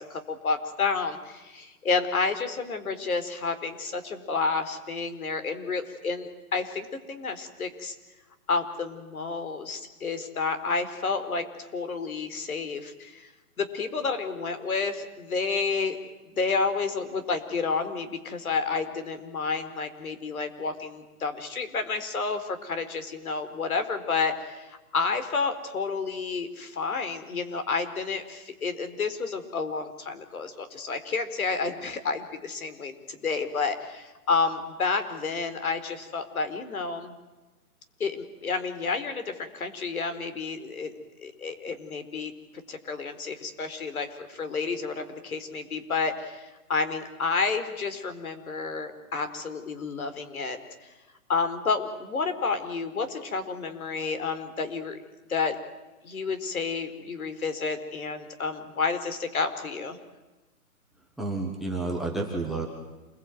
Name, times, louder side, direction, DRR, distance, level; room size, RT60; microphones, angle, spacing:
voice 1, 0.0-7.9 8.5-13.3 13.6-16.0 16.3-37.1 38.0-40.9 41.2-42.3 42.7-50.6 51.3-55.0 55.3-55.6 56.0-60.0, left 4 dB, 70° left, 9 dB, 4.7 m, -30 dB
voice 2, 61.2-62.7, right 3 dB, ahead, 0 dB, 1.0 m, -30 dB
28.0 x 22.5 x 9.5 m, 1.1 s
hypercardioid pair, 170°, 45 cm